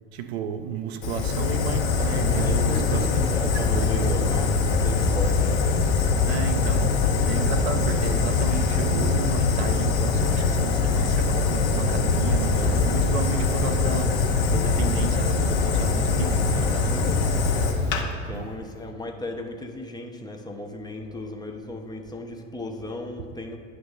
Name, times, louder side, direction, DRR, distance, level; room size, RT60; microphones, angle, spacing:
voice 1, 0.1-4.3 6.2-17.6 18.3-18.6, right 7 dB, 60° right, 0.6 m, -33 dB
Fire, 1.0-18.0, left 4 dB, 55° left, 1.0 m, -23 dB
voice 2, 2.3-5.5 16.8-17.4 18.2-23.6, left 2 dB, 10° left, 0.6 m, -36 dB
9.4 x 3.3 x 5.4 m
figure-of-eight pair, 75°, 36 cm